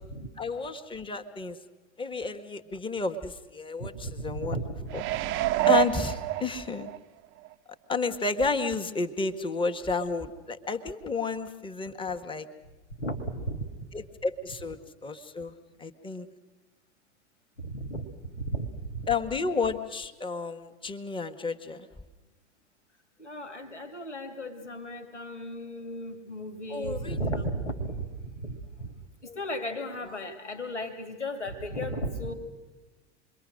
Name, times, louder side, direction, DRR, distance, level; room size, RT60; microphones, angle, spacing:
voice 1, 0.4-1.6 2.0-4.6 4.9-5.0 5.7-6.9 7.9-12.5 13.9-16.3 19.1-21.9 26.7-27.2 29.2-29.4, left 4 dB, 15° left, 7 dB, 1.5 m, -31 dB
voice 2, 3.8-5.2 13.0-13.7 17.6-19.1 23.2-32.3, right 1 dB, 85° left, 7 dB, 2.7 m, -35 dB
sound 1, 4.9-7.0 7.5-7.6, right 16 dB, 35° right, 0.7 m, -26 dB
27.5 x 23.0 x 6.5 m, 1.2 s
figure-of-eight pair, 90°, 35 cm